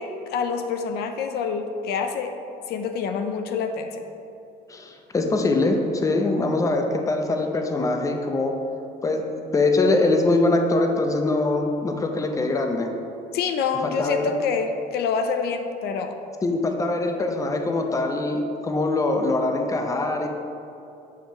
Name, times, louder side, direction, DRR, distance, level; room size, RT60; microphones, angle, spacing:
voice 1, 0.0-2.3 2.7-4.0 13.3-16.2, left 5 dB, 70° left, 6 dB, 0.5 m, -27 dB
voice 2, 4.7-8.6 9.0-12.9 13.8-14.3 16.4-20.3, left 2 dB, 20° left, 4 dB, 0.6 m, -23 dB
7.2 x 2.9 x 5.2 m, 2.7 s
cardioid pair, 110°, 17 cm